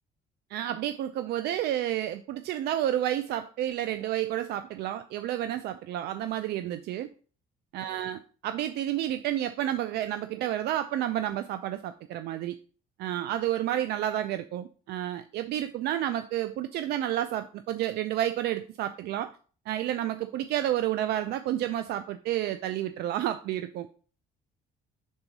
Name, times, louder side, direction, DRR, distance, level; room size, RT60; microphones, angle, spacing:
voice 1, 0.5-7.1 7.7-12.6 13.0-19.3 19.7-23.9, right 12 dB, 75° right, 0.5 m, -30 dB
5.5 x 3.9 x 6.0 m
cardioid pair, 110°, 17 cm